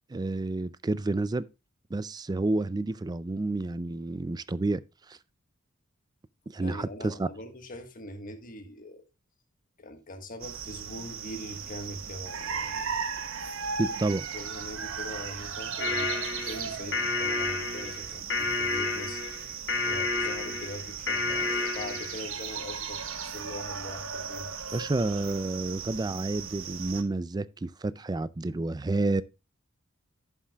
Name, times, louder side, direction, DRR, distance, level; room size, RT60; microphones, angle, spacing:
voice 1, 0.1-1.5 1.9-4.8 5.1-5.2 6.5-7.3 13.8-14.2 24.7-29.2, right 2 dB, 20° right, 0.4 m, -30 dB
voice 2, 6.6-9.0 9.8-12.9 14.3-19.2 19.8-23.0 23.3-24.5, left 1 dB, 40° left, 1.4 m, -42 dB
sound 1, 10.4-27.0, right 6 dB, 65° right, 1.1 m, -37 dB
sound 2, 15.8-22.2, left 3 dB, 60° left, 1.5 m, -30 dB
11.0 x 7.2 x 2.3 m
head